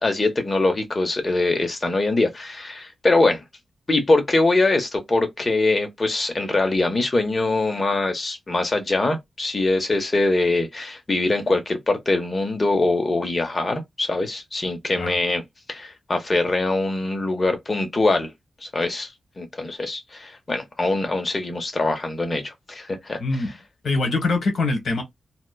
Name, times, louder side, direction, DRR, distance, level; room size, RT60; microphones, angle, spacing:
voice 1, 0.0-3.4 3.9-15.4 15.7-18.3 18.6-19.1 19.4-23.2, left 2 dB, 30° left, 0.6 m, -23 dB
voice 2, 23.2-23.5 23.8-25.0, left 3 dB, 70° left, 1.0 m, -23 dB
2.8 x 2.2 x 2.2 m
wide cardioid pair, 155°, 0 cm